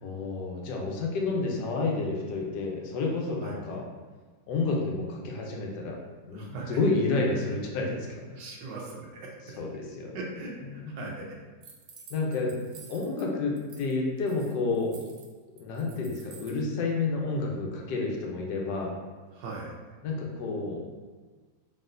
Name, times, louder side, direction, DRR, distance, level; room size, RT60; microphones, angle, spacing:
voice 1, 0.0-3.8 4.5-6.0 6.3-8.1 9.6-10.2 10.7-10.9 12.1-12.6 12.9-15.0 15.6-19.0 20.0-20.9, left 3 dB, 80° left, -1 dB, 1.3 m, -30 dB
voice 2, 6.3-6.8 8.4-9.6 10.1-11.4 19.3-19.8, right 3 dB, 85° right, -2 dB, 1.4 m, -40 dB
sound 1, 11.6-13.2 13.6-13.9 14.2-16.6, right 5 dB, 65° right, 0.8 m, -51 dB
4.2 x 3.5 x 2.5 m, 1.4 s
omnidirectional pair, 1.8 m